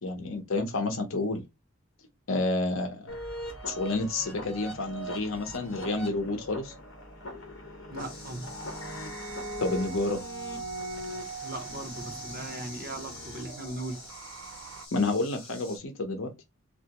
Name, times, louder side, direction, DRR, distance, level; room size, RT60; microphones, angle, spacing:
voice 1, 0.0-1.4 2.3-3.1 3.6-6.7 9.6-10.2 14.9-16.3, left 2 dB, 75° left, 0.8 m, -29 dB
sound 1, 3.1-14.1, left 1 dB, 60° left, 1.2 m, -41 dB
voice 2, 7.9-8.5 11.4-14.0, right 2 dB, 45° right, 0.7 m, -38 dB
sound 2, 8.0-15.8, left 3 dB, 25° left, 2.3 m, -47 dB
sound 3, 8.5-14.9, right 7 dB, 85° right, 0.4 m, -43 dB
3.3 x 2.5 x 2.9 m
head